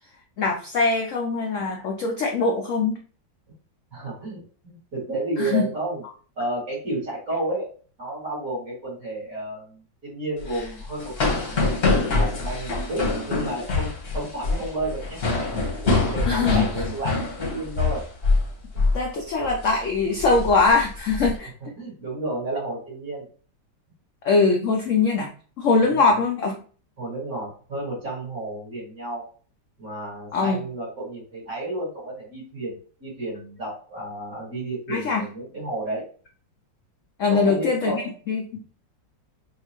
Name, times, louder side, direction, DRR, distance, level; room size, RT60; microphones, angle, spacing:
voice 1, 0.4-3.0 5.4-5.6 16.3-16.7 18.9-21.5 24.2-25.3 25.6-26.6 30.3-30.6 34.9-35.3 37.2-38.6, left 4 dB, 80° left, 2 dB, 0.6 m, -22 dB
voice 2, 3.9-6.0 6.4-11.7 12.0-15.3 15.8-18.0 18.7-19.0 21.8-23.2 25.8-26.1 27.0-29.3 29.8-36.0 37.3-38.1, right 2 dB, 50° right, -8 dB, 2.7 m, -32 dB
sound 1, 10.4-18.5 18.7-19.0 19.4-19.7 20.2-21.3, left 3 dB, 40° left, 0.9 m, -25 dB
5.2 x 2.4 x 2.9 m, 0.41 s
omnidirectional pair, 2.0 m